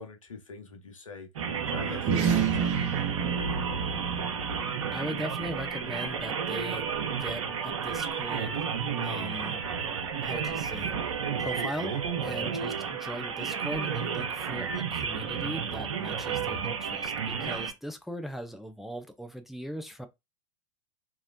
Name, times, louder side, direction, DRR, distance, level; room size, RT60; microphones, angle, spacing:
voice 1, 0.0-3.4 12.2-12.5, left 4 dB, 85° left, 0.9 m, -44 dB
sound 1, 1.4-17.7, right 6 dB, 70° right, 0.7 m, -32 dB
sound 2, 1.9-6.7, right 7 dB, 40° right, 0.9 m, -31 dB
voice 2, 4.9-8.7 9.0-9.6 10.2-20.1, equal, ahead, 0.3 m, -39 dB
2.9 x 2.8 x 2.6 m
hypercardioid pair, 100°, 17 cm